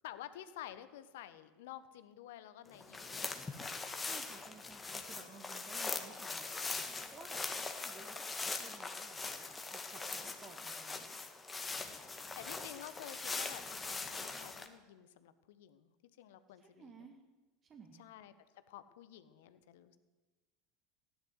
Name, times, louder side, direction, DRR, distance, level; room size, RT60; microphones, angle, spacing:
voice 1, 0.0-3.4 5.2-5.4 10.1-10.5 11.7-16.9 18.0-18.3 18.7-20.0, left 12 dB, 65° left, 13 dB, 1.1 m, -52 dB
sound 1, 2.7-14.7, left 4 dB, 20° left, 1.8 m, -42 dB
voice 2, 3.8-7.4 7.7-11.1 16.6-17.2 17.6-18.1, right 5 dB, 30° right, 4 dB, 1.8 m, -57 dB
16.0 x 11.0 x 8.0 m, 1.2 s
figure-of-eight pair, 75°, 0 cm